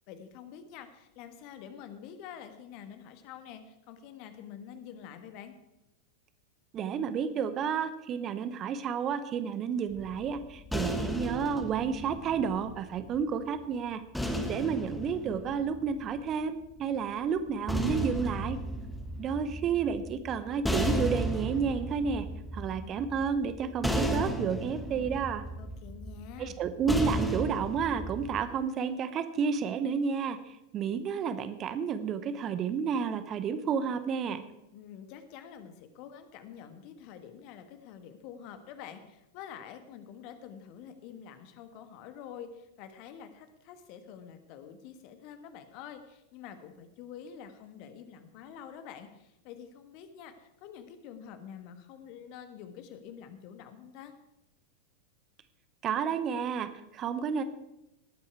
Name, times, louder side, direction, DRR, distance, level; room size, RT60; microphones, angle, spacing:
voice 1, 0.1-5.5 25.6-26.6 34.7-54.1, left 8 dB, 45° left, 9 dB, 1.4 m, -47 dB
voice 2, 6.7-14.1 14.5-18.6 19.2-22.3 22.5-25.5 26.4-34.4 55.8-57.4, right 6 dB, 30° right, 11 dB, 0.9 m, -31 dB
sound 1, 9.9-13.2 14.1-16.4 17.4-28.4, equal, 5° left, 1.5 m, -34 dB
18.5 x 8.9 x 4.8 m, 0.90 s
figure-of-eight pair, 90°, 0 cm